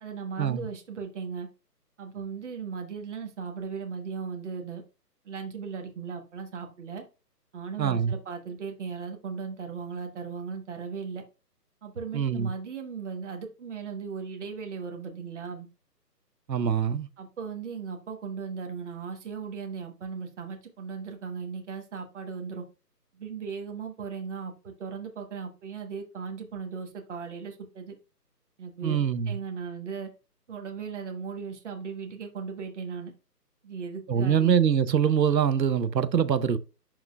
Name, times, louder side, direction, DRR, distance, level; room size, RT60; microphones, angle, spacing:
voice 1, 0.0-1.5 2.0-4.8 5.2-7.0 7.5-11.2 11.8-15.7 17.2-22.6 23.1-28.0 28.6-30.1 30.5-33.1 33.6-34.5, right 5 dB, 45° right, 1.3 m, -37 dB
voice 2, 7.8-8.1 12.1-12.5 16.5-17.1 28.8-29.4 34.1-36.6, right 8 dB, 85° right, 0.8 m, -24 dB
11.5 x 3.8 x 2.3 m
figure-of-eight pair, 155°, 49 cm